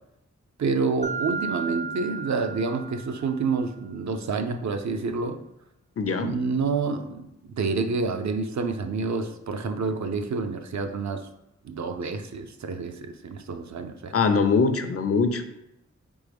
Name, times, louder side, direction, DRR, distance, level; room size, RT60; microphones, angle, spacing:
voice 1, 0.6-5.4 6.2-11.2 11.6-14.1, right 4 dB, 70° right, 6 dB, 0.5 m, -28 dB
Mallet percussion, 1.0-3.6, right 5 dB, 25° right, 0.5 m, -34 dB
voice 2, 6.0-6.3 14.1-15.4, left 4 dB, 50° left, 8 dB, 0.5 m, -22 dB
4.0 x 3.5 x 3.4 m, 0.86 s
cardioid pair, 55°, 30 cm